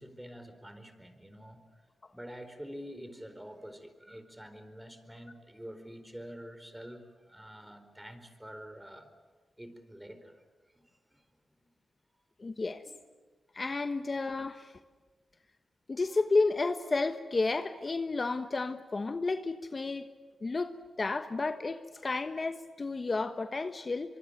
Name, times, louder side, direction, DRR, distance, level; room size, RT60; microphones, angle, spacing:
voice 1, 0.0-1.6 2.1-9.1 9.6-10.4 11.1-11.2 12.9-13.0, equal, 10° right, 4.4 m, -47 dB
voice 2, 12.4-12.8 13.5-14.7 15.9-20.1 20.4-24.2, left 3 dB, 45° left, 1.2 m, -32 dB
24.5 x 24.0 x 9.2 m
cardioid pair, 55°, 0 cm